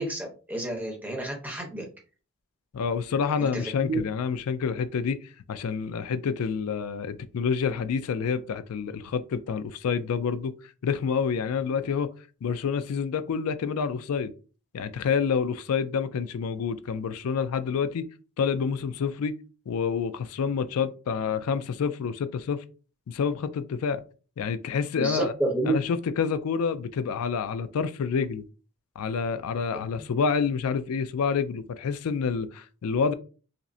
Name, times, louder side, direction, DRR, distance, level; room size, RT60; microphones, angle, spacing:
voice 1, 0.0-1.8 3.4-4.0 25.0-25.8 29.7-29.9, right 2 dB, 10° right, 0.9 m, -30 dB
voice 2, 2.7-10.5 10.8-12.1 12.4-14.3 14.7-18.0 18.4-19.3 19.7-22.6 23.1-24.0 24.4-25.3 25.6-28.4 29.0-33.1, left 6 dB, 85° left, 0.4 m, -28 dB
5.0 x 2.1 x 2.6 m
head